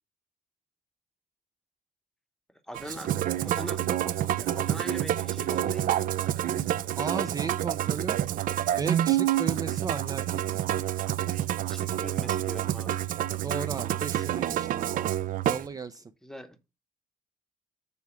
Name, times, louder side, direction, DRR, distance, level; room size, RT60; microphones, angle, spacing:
voice 1, 2.7-3.1 3.4-6.0 11.7-13.0 16.2-16.6, equal, 5° left, 0.9 m, -42 dB
Musical instrument, 2.7-15.6, right 12 dB, 70° right, 0.6 m, -28 dB
voice 2, 7.0-8.2 8.8-10.6 13.4-14.7 15.5-16.1, right 5 dB, 25° right, 0.5 m, -35 dB
7.0 x 4.7 x 5.7 m
cardioid pair, 145°, 14 cm